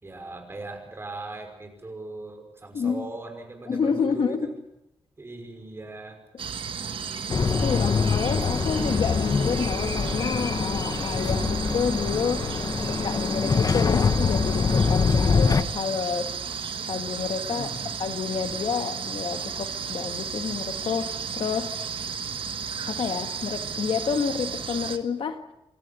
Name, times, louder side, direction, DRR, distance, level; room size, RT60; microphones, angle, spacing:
voice 1, 0.0-4.5 5.2-6.2 17.5-17.9, right 2 dB, 25° right, 4 dB, 5.6 m, -39 dB
voice 2, 2.7-3.1 3.7-4.5 7.6-12.5 12.9-16.4 16.9-17.7 18.0-21.8 22.9-25.4, left 6 dB, 70° left, 8 dB, 1.7 m, -29 dB
sound 1, 6.4-25.0, right 6 dB, 70° right, 1.6 m, -33 dB
sound 2, 7.3-15.6, left 5 dB, 40° left, 1.1 m, -24 dB
27.5 x 14.0 x 9.6 m, 0.89 s
wide cardioid pair, 130°, 9 cm